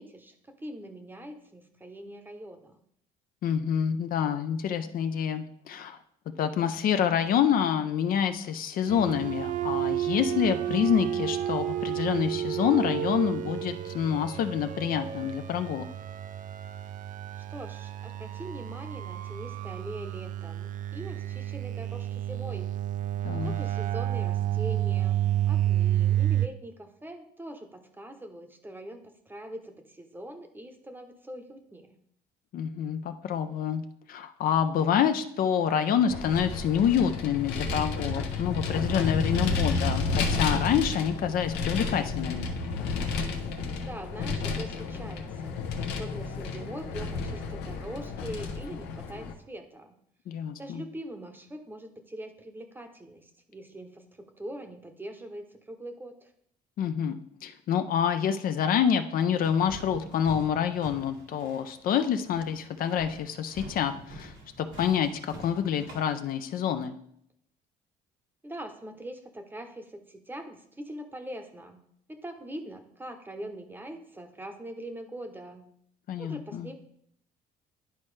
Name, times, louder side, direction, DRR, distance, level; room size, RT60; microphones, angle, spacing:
voice 1, 0.0-2.8 17.3-22.8 23.4-32.0 43.8-50.0 50.6-56.3 68.4-71.8 72.1-75.7 76.2-76.7, right 1 dB, 10° right, 6 dB, 0.8 m, -42 dB
voice 2, 3.4-6.0 6.4-15.9 23.2-23.5 32.5-33.8 34.1-42.5 50.3-50.8 56.8-67.0 76.1-76.7, left 8 dB, 60° left, 9 dB, 0.5 m, -27 dB
sound 1, 8.9-26.5, right 12 dB, 50° right, 0.4 m, -30 dB
Vehicle, 36.1-49.3, left 4 dB, 85° left, 0.9 m, -31 dB
sound 2, 59.4-66.1, right 1 dB, 90° right, 1.8 m, -46 dB
10.5 x 4.3 x 3.2 m, 0.70 s
cardioid pair, 110°, 17 cm